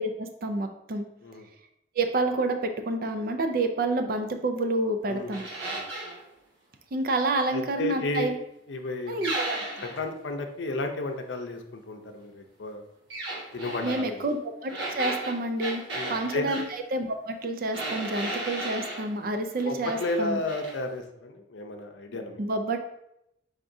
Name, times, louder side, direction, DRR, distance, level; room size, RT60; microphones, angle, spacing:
voice 1, 0.0-1.1 2.0-5.5 6.9-8.3 9.1-9.6 13.8-15.8 16.1-20.4 22.4-22.8, right 2 dB, 55° right, 6 dB, 0.4 m, -29 dB
sound 1, 5.3-6.2 9.2-10.0 13.1-14.0 14.7-16.7 17.7-19.1 19.6-20.2 20.5-20.7, right 2 dB, 85° right, 1.3 m, -34 dB
voice 2, 7.5-8.3 8.7-9.2 9.8-12.8 13.5-14.3 15.9-16.5 19.6-22.4, left 2 dB, 85° left, 5 dB, 0.5 m, -32 dB
4.7 x 3.6 x 2.6 m, 0.82 s
head